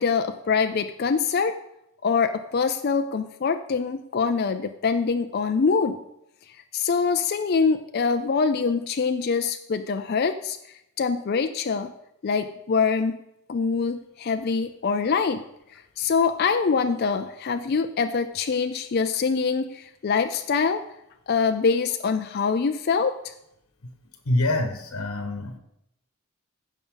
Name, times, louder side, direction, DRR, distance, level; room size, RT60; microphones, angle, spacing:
voice 1, 0.0-1.5 2.0-6.0 6.7-10.6 11.0-11.9 12.2-13.2 13.5-15.4 15.7-20.8 21.3-23.3, left 5 dB, 45° left, 7 dB, 0.4 m, -24 dB
voice 2, 24.2-25.6, left 1 dB, 85° left, 6 dB, 1.1 m, -25 dB
15.0 x 5.4 x 3.9 m, 0.81 s
head